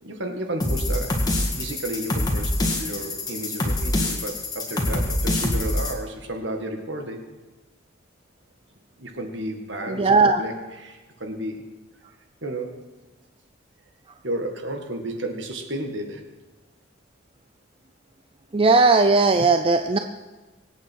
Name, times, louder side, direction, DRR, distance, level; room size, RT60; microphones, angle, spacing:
voice 1, 0.0-1.2 1.5-7.3 9.0-10.1 10.4-10.5 10.8-11.6 12.4-12.8 14.2-16.3, right 1 dB, 65° right, 4 dB, 1.9 m, -32 dB
sound 1, 0.6-5.9, left 1 dB, 20° left, 1.9 m, -25 dB
voice 2, 9.9-10.4 18.5-20.0, right 3 dB, 30° right, 7 dB, 0.5 m, -17 dB
24.0 x 8.8 x 4.6 m, 1.2 s
head